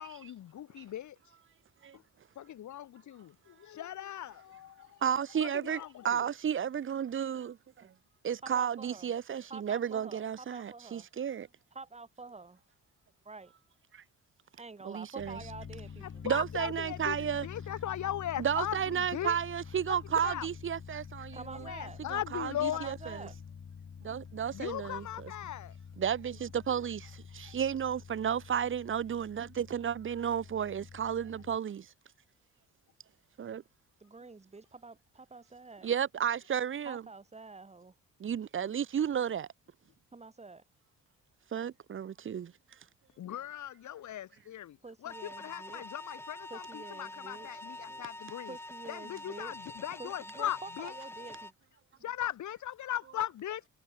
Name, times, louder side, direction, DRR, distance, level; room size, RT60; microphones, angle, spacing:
voice 1, 0.0-1.4 1.9-2.0 2.4-5.0 5.4-6.3 16.0-19.4 19.9-20.0 20.2-20.5 21.5-22.9 24.5-25.7 27.4-27.6 43.2-48.6 48.9-51.0 52.0-53.7, left 11 dB, 70° left, 3.6 m, -39 dB
voice 2, 5.0-5.8 6.0-7.9 8.2-11.5 13.9-14.0 14.8-15.4 16.2-17.5 18.4-21.7 22.1-22.9 24.0-25.0 26.0-31.9 33.4-33.6 35.8-37.0 38.2-39.5 41.5-42.5, right 8 dB, 40° right, 0.9 m, -33 dB
voice 3, 8.4-9.1 9.5-11.1 11.7-12.6 13.2-13.5 14.6-16.2 21.3-22.0 22.7-23.3 34.0-35.9 36.8-37.9 40.1-40.6 44.8-45.8 46.5-47.5 48.5-49.5 50.0-51.5, right 3 dB, 20° right, 3.3 m, -47 dB
sound 1, 15.2-31.6, left 6 dB, 45° left, 6.6 m, -48 dB
sound 2, 45.1-51.5, left 1 dB, 10° left, 2.5 m, -46 dB
cardioid pair, 90°, 30 cm